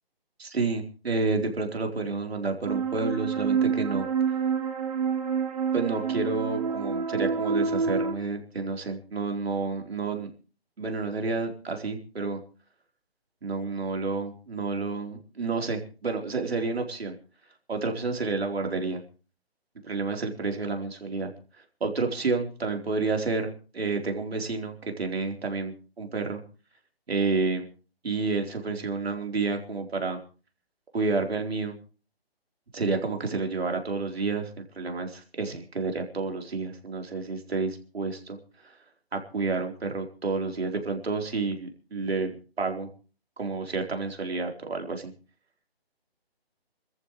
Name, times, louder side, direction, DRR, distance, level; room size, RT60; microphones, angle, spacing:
voice 1, 0.4-4.1 5.7-10.3 10.8-12.4 13.4-17.2 17.7-19.0 19.8-21.3 21.8-26.4 27.1-27.7 28.0-30.2 30.9-31.7 32.7-38.4 39.1-42.3 42.6-42.9 43.4-45.1, right 3 dB, 75° right, 4 dB, 4.2 m, -30 dB
sound 1, 2.7-8.1, right 6 dB, 40° right, 2.5 m, -27 dB
28.0 x 14.0 x 3.2 m, 0.36 s
hypercardioid pair, 165°, 31 cm